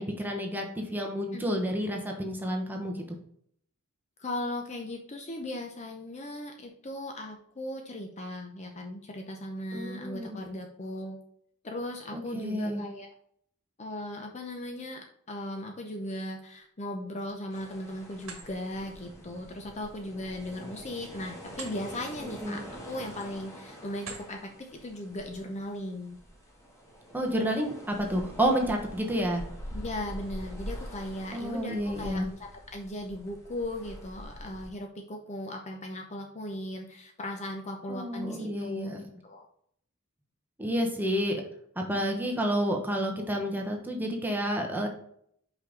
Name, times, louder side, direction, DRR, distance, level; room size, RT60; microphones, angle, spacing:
voice 1, 0.0-3.0 9.7-10.4 12.1-12.8 22.4-22.6 27.1-29.4 31.3-32.3 37.9-39.0 40.6-41.4 41.8-44.9, equal, 10° right, 1 dB, 1.0 m, -30 dB
voice 2, 4.2-11.2 11.6-13.1 13.8-26.2 29.7-38.9 39.2-39.5, left 1 dB, 30° left, 3 dB, 0.7 m, -38 dB
sound 1, 17.1-17.7 18.1-18.5 20.6-21.8 22.2-22.4 23.0-23.5 23.9-24.3, right 5 dB, 65° right, 1.5 m, -46 dB
sound 2, 17.5-34.7, equal, 15° left, 1.5 m, -45 dB
5.5 x 5.2 x 3.8 m, 0.66 s
head